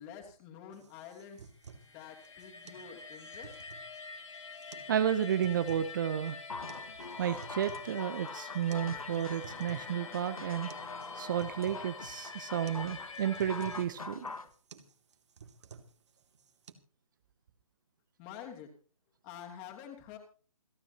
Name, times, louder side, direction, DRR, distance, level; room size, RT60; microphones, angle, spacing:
voice 1, 0.0-1.5 1.9-3.6 18.2-18.7 19.2-20.2, left 8 dB, 20° left, 3 dB, 2.9 m, -48 dB
sound 1, 0.7-16.7, right 5 dB, 55° right, 2.3 m, -54 dB
sound 2, 1.6-13.8, left 5 dB, 60° left, 4.4 m, -46 dB
voice 2, 4.9-6.4 7.2-10.7 11.1-14.3, right 9 dB, 35° right, 12 dB, 0.8 m, -32 dB
sound 3, 6.5-14.5, left 3 dB, 80° left, 1.8 m, -44 dB
28.0 x 9.9 x 2.9 m, 0.41 s
figure-of-eight pair, 145°, 18 cm